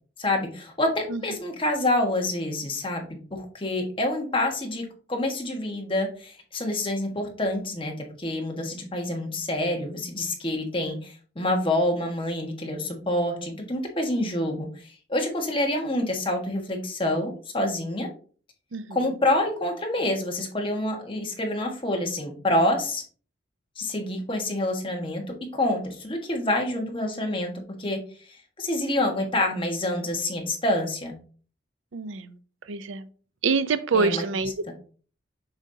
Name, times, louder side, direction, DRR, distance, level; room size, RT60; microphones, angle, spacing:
voice 1, 0.2-18.1 18.9-23.0 23.8-25.2 25.5-28.0 28.6-31.2 33.9-34.2 34.7-34.8, left 1 dB, 25° left, 1.4 m, -27 dB
voice 2, 31.9-32.3 32.7-33.1 33.4-34.7, right 4 dB, 85° right, 0.5 m, -26 dB
7.1 x 5.3 x 2.7 m
head